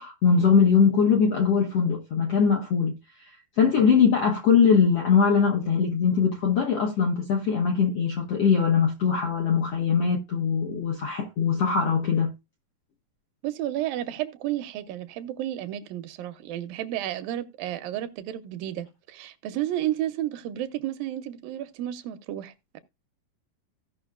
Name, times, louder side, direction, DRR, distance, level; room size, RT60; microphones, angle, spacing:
voice 1, 0.0-2.9 3.6-12.3, left 6 dB, 70° left, 1.4 m, -21 dB
voice 2, 13.4-22.8, right 12 dB, 80° right, 2.4 m, -32 dB
16.5 x 5.7 x 2.4 m
omnidirectional pair, 4.1 m